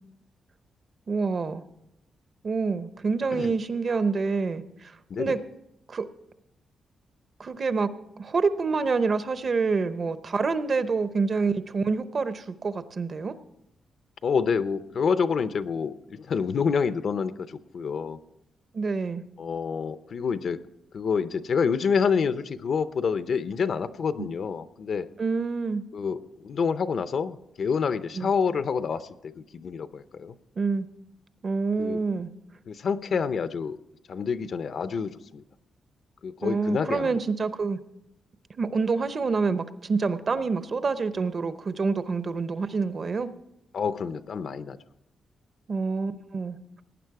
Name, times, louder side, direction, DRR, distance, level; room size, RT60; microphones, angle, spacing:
voice 1, 1.1-1.6 2.4-5.4 5.9-6.1 7.4-7.9 8.2-13.3 18.7-19.2 24.2-24.3 25.2-25.8 28.2-28.3 30.6-30.9 31.4-32.3 36.4-37.8 38.6-43.3 45.7-46.8, right 4 dB, 35° right, 12 dB, 0.7 m, -27 dB
voice 2, 5.1-5.4 14.2-18.2 19.4-20.6 20.9-25.1 25.9-30.4 31.8-32.0 32.7-33.8 34.1-35.4 36.2-37.2 43.7-44.8, left 6 dB, 50° left, 12 dB, 0.6 m, -28 dB
18.0 x 9.8 x 4.8 m, 0.82 s
wide cardioid pair, 165°, 0 cm